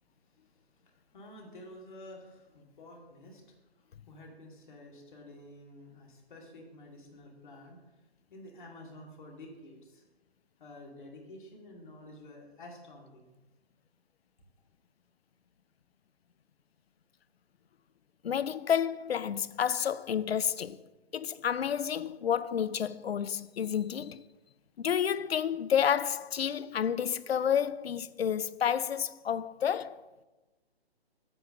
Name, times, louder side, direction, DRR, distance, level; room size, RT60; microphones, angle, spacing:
voice 1, 0.2-8.0 8.3-10.0 10.6-13.3, left 1 dB, 50° left, 2.3 m, -50 dB
voice 2, 18.2-20.8 21.1-24.2 24.8-30.0, left 8 dB, 70° left, 0.5 m, -30 dB
8.1 x 4.4 x 6.7 m
figure-of-eight pair, 135°, 32 cm